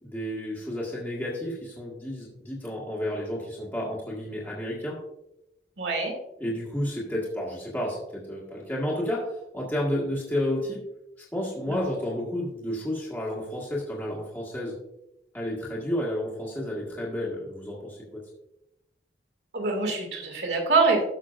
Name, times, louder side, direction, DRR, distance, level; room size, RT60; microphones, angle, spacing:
voice 1, 0.0-5.0 6.4-10.8 11.2-14.8 15.3-18.2, left 1 dB, 10° left, -5 dB, 1.7 m, -31 dB
voice 2, 5.8-6.1 11.7-11.8 19.5-21.0, right 3 dB, 70° right, 2 dB, 2.2 m, -24 dB
14.0 x 6.0 x 2.5 m, 0.88 s
head